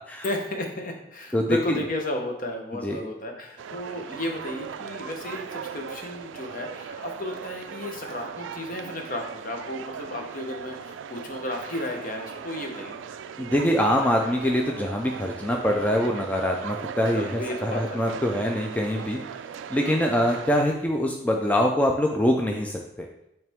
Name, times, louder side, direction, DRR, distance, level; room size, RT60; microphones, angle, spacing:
voice 1, 0.2-13.2 17.1-18.4, left 1 dB, 45° left, 3 dB, 0.9 m, -33 dB
voice 2, 1.3-1.8 2.8-3.0 13.4-19.2 19.7-23.1, equal, 10° left, 1 dB, 0.4 m, -24 dB
sound 1, 3.6-20.6, right 7 dB, 90° right, 0.3 m, -39 dB
8.7 x 3.3 x 3.5 m, 0.83 s
head